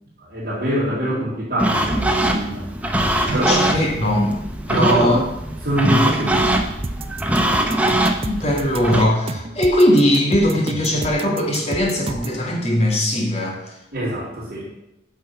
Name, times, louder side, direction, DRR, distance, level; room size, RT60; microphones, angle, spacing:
voice 1, 0.2-2.7 3.3-3.6 4.7-5.2 5.6-6.5 13.9-14.7, right 1 dB, 50° right, -9 dB, 3.5 m, -23 dB
sound 1, 1.6-9.1, right 1 dB, 5° right, 0.9 m, -22 dB
voice 2, 3.3-4.4 4.7-5.2 5.8-6.0 8.2-13.8, equal, 35° left, -1 dB, 2.4 m, -20 dB
sound 2, 6.8-12.4, right 3 dB, 30° right, 0.5 m, -31 dB
9.3 x 6.3 x 7.5 m, 0.84 s
head